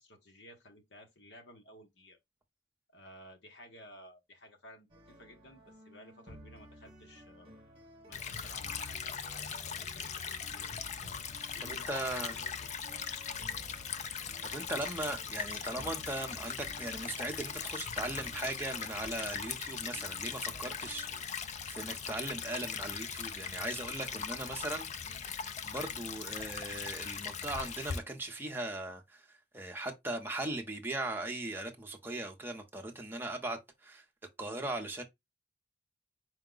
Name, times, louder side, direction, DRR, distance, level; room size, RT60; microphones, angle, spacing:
voice 1, 0.0-2.2 2.9-4.9 5.2-7.6 8.1-10.8 11.5-13.4, left 1 dB, 70° left, 1.1 m, -55 dB
sound 1, 4.9-21.2, equal, 30° right, 1.2 m, -55 dB
Stream / Trickle dribble, 8.1-28.0, left 7 dB, 40° left, 0.4 m, -40 dB
voice 2, 11.6-12.4 14.4-34.0 34.4-35.0, right 2 dB, 10° right, 0.8 m, -39 dB
4.7 x 2.2 x 3.8 m
head